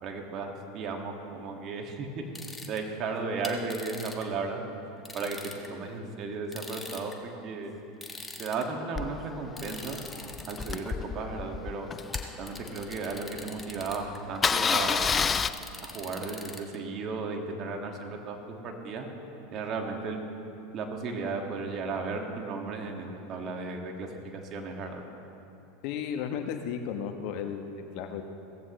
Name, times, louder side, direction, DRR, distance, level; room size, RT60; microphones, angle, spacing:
voice 1, 0.0-2.2 2.7-4.6 5.1-5.4 5.7-7.7 8.4-10.0 10.5-11.9 12.4-15.3 15.8-19.1 19.5-20.2 20.7-24.1 24.3-25.0, right 4 dB, 45° right, 2 dB, 2.0 m, -35 dB
sound 1, 2.3-2.8 3.4-4.2 5.0-5.7 6.5-7.1 8.0-8.6 9.6-10.9 12.1-14.2 15.3-16.8, left 2 dB, 10° left, 1.5 m, -42 dB
Engine starting, 9.0-13.2 13.6-13.7 13.9-14.1 14.3-15.5, left 6 dB, 25° left, 0.4 m, -29 dB
voice 2, 25.8-28.2, left 7 dB, 55° left, 6 dB, 1.1 m, -34 dB
17.5 x 15.0 x 3.2 m, 2.8 s
hypercardioid pair, 85°, 0 cm